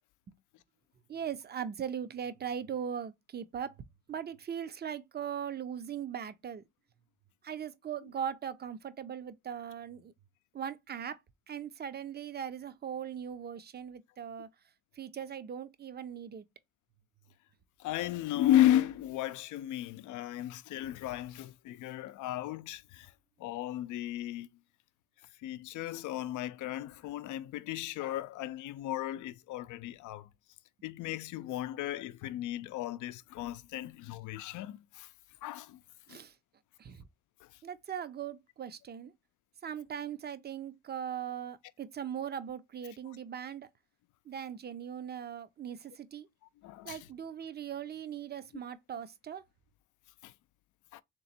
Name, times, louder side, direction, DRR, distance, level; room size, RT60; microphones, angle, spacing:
voice 1, 1.1-3.7 4.1-6.6 7.4-10.1 10.5-11.2 11.5-14.5 15.0-16.4 36.1-36.3 36.8-37.1 37.6-39.1 39.6-43.7 44.3-46.3 46.8-49.4, right 8 dB, 35° right, 0.6 m, -39 dB
voice 2, 17.8-23.1 23.4-24.5 25.4-30.3 30.8-35.1 35.4-35.8 36.1-36.2 46.6-47.0 50.2-50.3 50.9-51.0, left 13 dB, 80° left, 0.5 m, -34 dB
3.4 x 3.0 x 4.1 m
cardioid pair, 90°, 30 cm